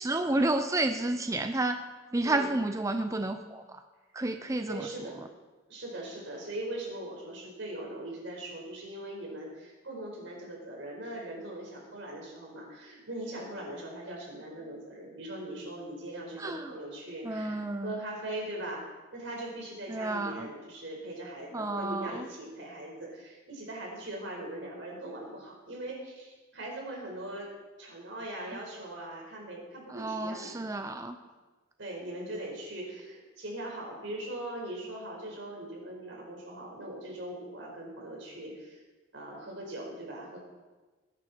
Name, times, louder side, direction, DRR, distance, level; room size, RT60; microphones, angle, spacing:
voice 1, 0.0-1.8 2.1-3.8 4.1-4.9 16.4-16.7 17.2-18.0 19.9-20.5 21.5-22.3 29.9-31.2, right 2 dB, 15° right, 7 dB, 0.6 m, -31 dB
voice 2, 4.4-5.2 5.7-18.9 19.1-27.5 27.8-30.7 31.8-38.8 39.1-40.4, right 1 dB, 75° right, -1 dB, 5.1 m, -40 dB
20.0 x 10.5 x 4.5 m, 1.2 s
head